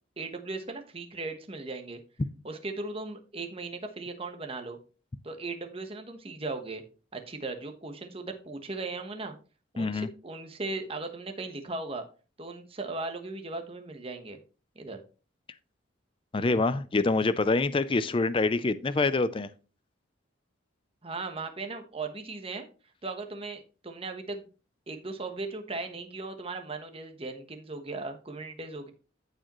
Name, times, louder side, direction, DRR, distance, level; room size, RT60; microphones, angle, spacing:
voice 1, 0.2-2.0 2.4-4.8 5.2-6.8 7.1-9.3 9.7-12.0 12.4-14.4 14.7-15.0 21.0-22.6 23.0-24.5 24.9-28.9, right 3 dB, 30° right, 6 dB, 1.1 m, -37 dB
voice 2, 9.8-10.1 16.3-19.5, left 3 dB, 25° left, 14 dB, 0.4 m, -26 dB
14.5 x 4.9 x 3.0 m, 0.34 s
head